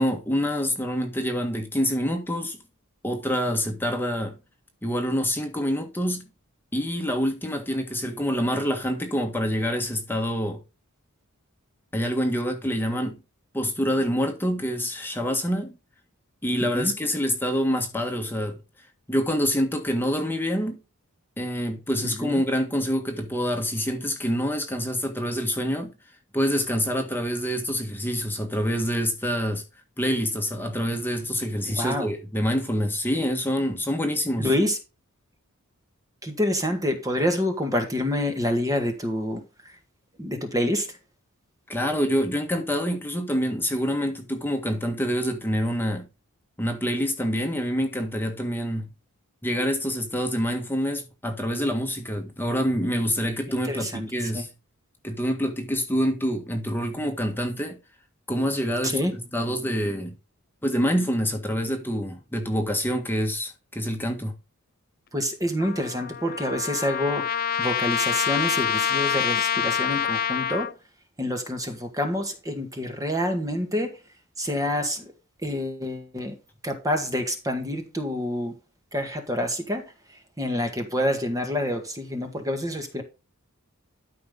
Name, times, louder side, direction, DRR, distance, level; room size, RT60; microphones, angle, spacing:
voice 1, 0.0-2.6 3.0-4.3 4.8-6.3 6.7-10.6 11.9-13.2 13.5-15.8 16.4-18.6 19.1-20.8 21.4-25.9 26.3-29.6 30.0-34.5 41.7-46.1 46.6-48.9 49.4-54.5 55.0-57.8 58.3-60.1 60.6-64.3, equal, 10° left, 1.6 m, -26 dB
voice 2, 22.0-22.4 31.8-32.1 34.4-34.8 36.2-39.7 40.2-41.0 53.7-54.4 58.8-59.1 65.1-70.7 71.2-74.0 74.4-75.1 75.4-76.3 76.6-78.5 78.9-79.8 80.1-83.0, left 1 dB, 15° right, 1.8 m, -27 dB
Trumpet, 65.6-70.7, left 9 dB, 40° left, 0.5 m, -26 dB
13.0 x 5.6 x 3.9 m
head